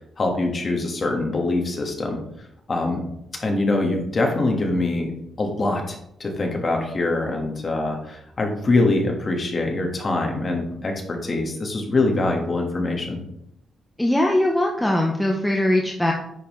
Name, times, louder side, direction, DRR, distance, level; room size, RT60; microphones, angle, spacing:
voice 1, 0.2-2.2 2.7-3.0 3.4-5.1 5.4-13.2, left 2 dB, 25° left, 1 dB, 1.4 m, -24 dB
voice 2, 14.0-16.1, left 1 dB, 5° left, 0 dB, 0.6 m, -21 dB
9.5 x 5.4 x 3.1 m, 0.78 s
wide cardioid pair, 170°, 0 cm